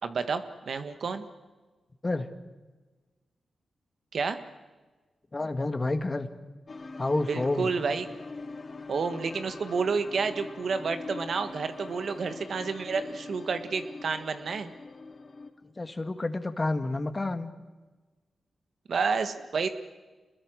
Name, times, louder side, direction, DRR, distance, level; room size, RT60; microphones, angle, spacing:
voice 1, 0.0-1.2 4.1-4.4 7.3-8.1 8.9-14.7 18.9-19.7, right 5 dB, 70° right, 9 dB, 1.6 m, -30 dB
voice 2, 5.3-6.3 7.0-7.7 15.8-17.5, left 2 dB, 30° left, 9 dB, 1.8 m, -29 dB
sound 1, 6.7-15.5, left 3 dB, 50° left, 2.5 m, -43 dB
26.5 x 21.0 x 6.4 m, 1.3 s
cardioid pair, 50°, 0 cm